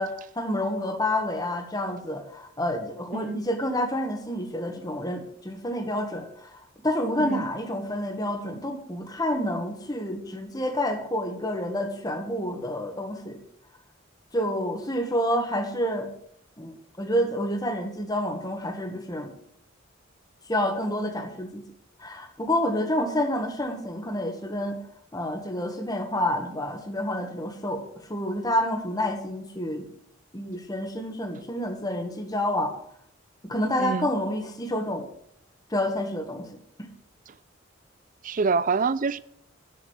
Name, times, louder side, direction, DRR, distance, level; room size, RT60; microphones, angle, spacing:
voice 1, 0.0-6.6 6.8-13.4 14.3-16.1 16.6-19.3 20.5-21.6 22.0-24.8 25.1-27.8 28.1-29.9 30.3-32.7 33.4-35.0 35.7-36.6, left 1 dB, 20° left, 1.6 m, -28 dB
voice 2, 33.8-34.1 37.3-37.4 38.2-39.2, right 4 dB, 40° right, 0.4 m, -26 dB
9.7 x 6.5 x 8.1 m
head